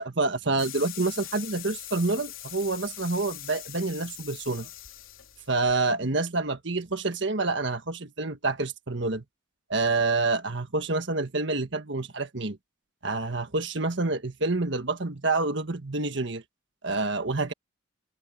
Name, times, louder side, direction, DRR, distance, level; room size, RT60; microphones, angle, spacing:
voice 1, 0.0-4.7 5.5-9.2 9.7-12.6 13.0-16.4 16.8-17.5, right 3 dB, 60° right, 1.5 m, -28 dB
sound 1, 0.6-5.7, left 14 dB, 85° left, 3.2 m, -42 dB
open air
head